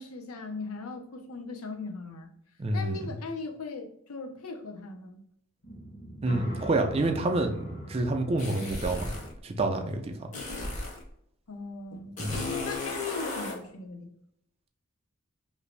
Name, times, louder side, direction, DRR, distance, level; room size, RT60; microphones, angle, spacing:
voice 1, 0.0-2.3 2.7-5.2 11.5-12.3 12.6-14.1, left 3 dB, 90° left, 0.6 m, -39 dB
voice 2, 2.6-3.0 6.2-9.1 9.4-10.1 12.2-12.4, right 2 dB, 30° right, 0.4 m, -28 dB
sound 1, 5.6-9.3, equal, 60° left, 1.0 m, -40 dB
sound 2, 8.4-9.3 10.3-11.0 12.2-13.6, left 2 dB, 35° left, 0.7 m, -35 dB
2.9 x 2.6 x 3.2 m
head